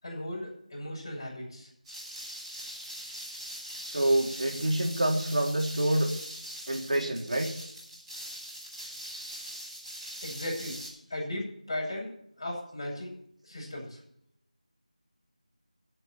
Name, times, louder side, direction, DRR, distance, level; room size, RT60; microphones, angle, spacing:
voice 1, 0.0-1.7 10.2-10.8 11.1-12.1 12.4-13.1 13.4-14.0, left 1 dB, 30° left, -7 dB, 6.7 m, -36 dB
sound 1, 1.8-10.9, equal, 5° right, 4.1 m, -42 dB
voice 2, 3.8-6.1 6.7-7.5, right 1 dB, 65° right, 1 dB, 3.3 m, -27 dB
22.0 x 8.0 x 4.4 m, 0.69 s
figure-of-eight pair, 175°, 4 cm